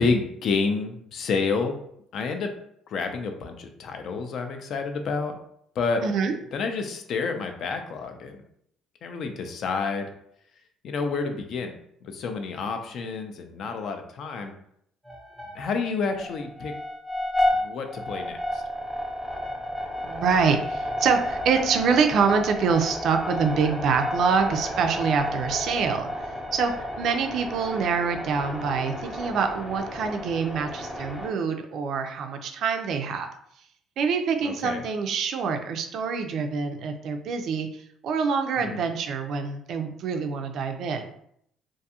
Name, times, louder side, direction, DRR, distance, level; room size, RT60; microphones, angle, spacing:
voice 1, 0.0-1.8 2.1-2.5 2.9-5.4 5.8-6.0 6.5-8.4 9.0-10.1 10.8-11.7 12.0-14.5 15.5-16.7 17.6-18.6 34.4-34.8 38.6-38.8, left 4 dB, 55° left, 6 dB, 0.4 m, -29 dB
voice 2, 6.0-6.3 20.0-26.1 26.5-33.3 34.0-41.1, right 5 dB, 60° right, 5 dB, 0.3 m, -25 dB
sound 1, 15.0-15.8 16.1-31.3, left 1 dB, ahead, 0.5 m, -32 dB
2.5 x 2.3 x 2.7 m, 0.71 s
cardioid pair, 125°, 0 cm